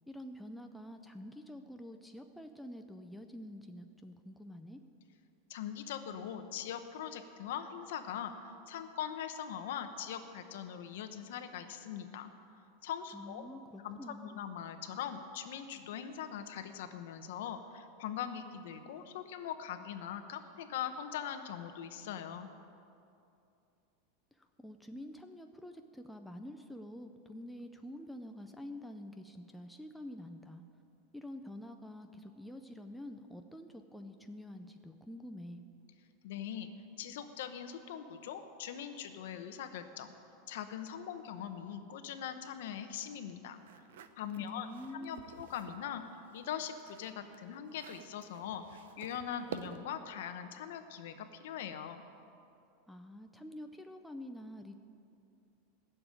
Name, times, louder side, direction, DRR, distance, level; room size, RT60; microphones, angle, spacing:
voice 1, 0.1-4.8 13.1-14.4 24.3-30.6 31.1-35.6 44.4-45.3 52.9-54.8, left 1 dB, ahead, 4 dB, 0.4 m, -47 dB
voice 2, 5.5-12.3 12.8-13.5 13.8-22.5 36.2-36.7 37.0-40.1 40.5-43.6 44.2-44.7 44.9-46.0 46.3-48.6 49.0-52.0, left 9 dB, 65° left, 8 dB, 1.0 m, -41 dB
sound 1, 43.6-45.8 46.3-50.1, right 8 dB, 80° right, 0.8 m, -50 dB
16.0 x 7.0 x 8.9 m, 2.6 s
supercardioid pair, 175°, 0 cm